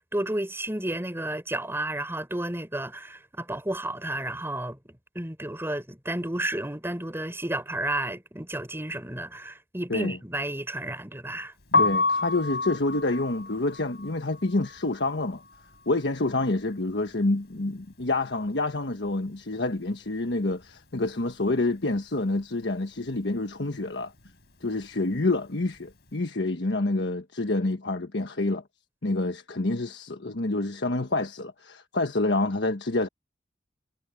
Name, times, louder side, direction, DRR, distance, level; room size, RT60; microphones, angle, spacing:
voice 1, 0.0-4.8 5.1-11.5, right 1 dB, 15° right, 4.1 m, -32 dB
Piano, 11.6-17.5 17.8-19.4 19.7-26.1, left 3 dB, 65° left, 4.5 m, -31 dB
voice 2, 11.8-15.4 15.9-24.1 24.6-28.6 29.0-33.1, left 2 dB, 85° left, 1.3 m, -27 dB
head